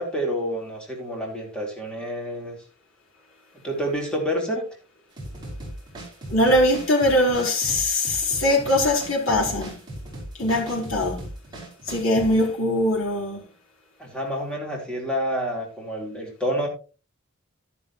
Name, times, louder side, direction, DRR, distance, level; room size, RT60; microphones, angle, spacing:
voice 1, 0.0-2.6 3.6-4.6 14.0-16.7, equal, 5° left, 4.2 m, -28 dB
sound 1, 5.2-12.4, right 1 dB, 20° right, 6.3 m, -37 dB
voice 2, 6.3-9.8 10.4-11.2 11.8-13.5, left 1 dB, 80° left, 4.5 m, -21 dB
12.0 x 11.0 x 3.1 m
head